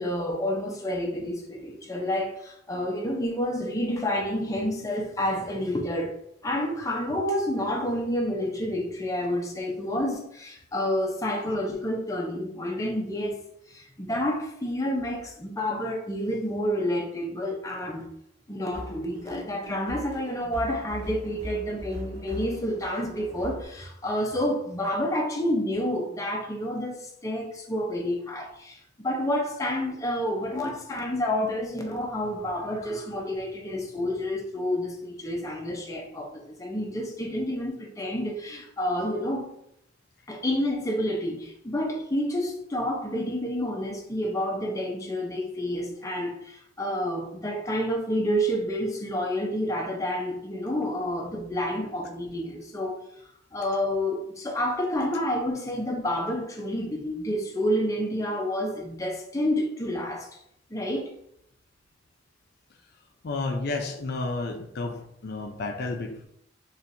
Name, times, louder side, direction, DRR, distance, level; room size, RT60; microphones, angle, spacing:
voice 1, 0.0-6.2 6.4-13.4 13.7-18.1 18.5-39.5 40.3-53.0 53.5-60.3 60.7-61.1, equal, 20° left, 0.6 m, -29 dB
sound 1, 18.7-23.6, equal, 65° right, 1.1 m, -40 dB
voice 2, 63.2-66.3, left 3 dB, 60° left, 0.5 m, -31 dB
4.3 x 3.2 x 2.6 m
head